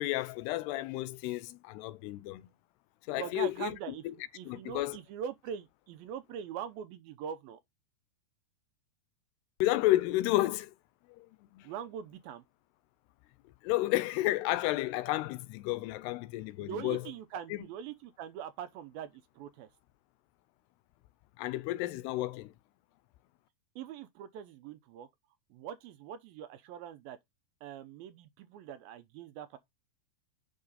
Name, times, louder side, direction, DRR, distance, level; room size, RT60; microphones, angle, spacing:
voice 1, 0.0-2.5 3.1-3.7 4.1-4.2 4.5-5.0 9.6-10.7 11.1-11.3 11.5-11.7 13.6-17.0 17.5-17.6 21.4-22.5, left 17 dB, 85° left, 2.8 m, -31 dB
voice 2, 3.2-4.0 4.3-7.6 11.6-12.4 16.6-19.7 23.8-25.1 25.5-27.2 27.6-29.6, right 9 dB, 80° right, 2.4 m, -42 dB
8.7 x 5.6 x 4.1 m
omnidirectional pair, 4.6 m